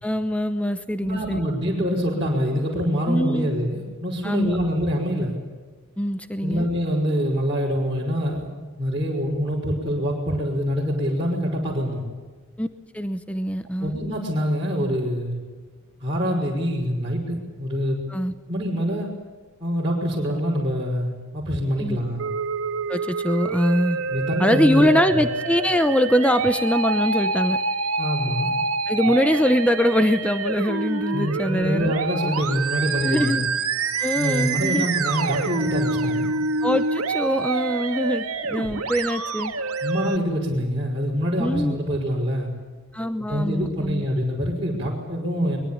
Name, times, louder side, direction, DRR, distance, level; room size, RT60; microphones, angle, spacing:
voice 1, 0.0-1.4 3.1-3.5 4.2-4.6 6.0-6.7 12.6-12.7 12.9-13.9 18.1-18.3 21.8-22.0 22.9-24.0 24.4-27.6 28.9-31.9 33.0-33.5 34.0-34.9 36.6-39.5 41.4-41.8 42.9-44.0, equal, 5° left, 9 dB, 0.9 m, -23 dB
voice 2, 1.0-5.4 6.4-8.5 8.8-12.1 13.8-15.4 16.0-18.0 18.5-19.1 19.6-22.3 24.1-25.2 28.0-28.5 31.1-33.5 34.2-36.3 39.8-42.5 43.3-45.6, equal, 25° right, -5 dB, 5.7 m, -25 dB
Musical instrument, 22.2-40.2, right 3 dB, 80° right, 2.1 m, -27 dB
23.5 x 23.0 x 8.8 m, 1.4 s
head